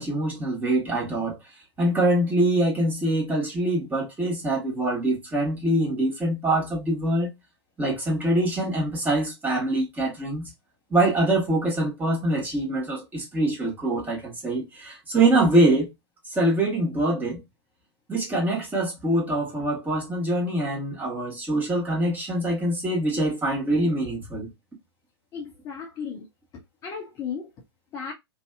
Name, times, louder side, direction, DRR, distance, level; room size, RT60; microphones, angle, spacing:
voice 1, 0.0-1.4 1.8-7.3 7.8-10.5 10.9-15.9 16.3-17.4 18.1-24.5, right 1 dB, 10° right, 1.1 m, -24 dB
voice 2, 25.3-26.3 26.5-27.5 27.9-28.1, left 6 dB, 25° left, 0.5 m, -35 dB
2.6 x 2.4 x 2.2 m
figure-of-eight pair, 105°, 14 cm